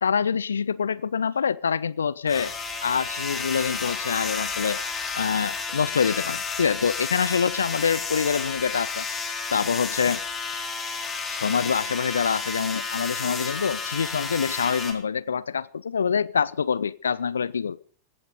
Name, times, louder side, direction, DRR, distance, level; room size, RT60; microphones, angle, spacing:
voice 1, 0.0-2.5 2.8-4.8 5.2-9.1 9.5-10.2 11.4-17.8, left 6 dB, 70° left, 0.7 m, -25 dB
sound 1, 2.3-14.9, left 4 dB, 20° left, 4.0 m, -31 dB
16.5 x 15.0 x 5.1 m
figure-of-eight pair, 90°, 0 cm